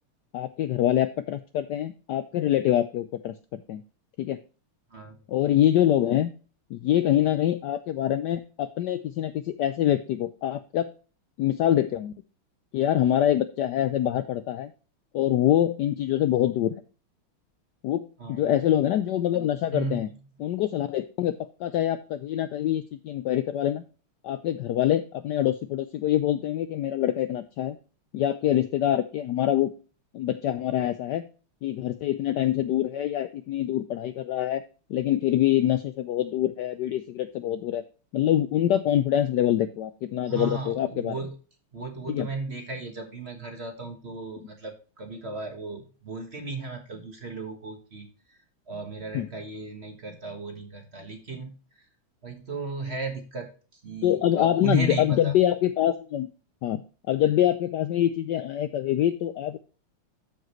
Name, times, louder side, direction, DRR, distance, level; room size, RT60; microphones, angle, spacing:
voice 1, 0.3-3.3 3.7-3.8 4.2-4.4 5.3-6.3 6.7-10.9 11.4-12.1 12.7-14.7 15.1-16.8 17.8-20.1 20.4-23.8 24.2-27.8 28.1-29.7 30.1-31.3 31.6-34.6 34.9-37.8 38.1-41.1 42.1-42.3 49.1-49.3 54.0-56.3 56.6-56.8 57.1-59.6, left 12 dB, 90° left, 12 dB, 0.9 m, -25 dB
voice 2, 18.2-18.5 19.7-20.0 40.3-41.4 41.7-48.4 48.7-51.5 52.2-55.3, right 3 dB, 35° right, 4 dB, 1.3 m, -35 dB
13.5 x 4.9 x 3.0 m, 0.36 s
omnidirectional pair, 2.4 m